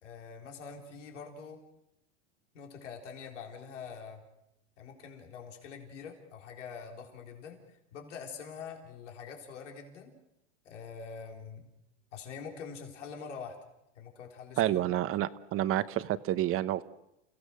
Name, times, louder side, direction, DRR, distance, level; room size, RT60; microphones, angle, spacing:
voice 1, 0.0-1.6 2.5-4.2 4.8-10.2 10.6-11.7 12.1-13.6 14.0-15.0, left 6 dB, 90° left, 2 dB, 3.9 m, -45 dB
voice 2, 14.6-16.8, right 13 dB, 40° right, 14 dB, 1.0 m, -29 dB
29.5 x 16.5 x 6.4 m, 0.84 s
supercardioid pair, 120°, 35 cm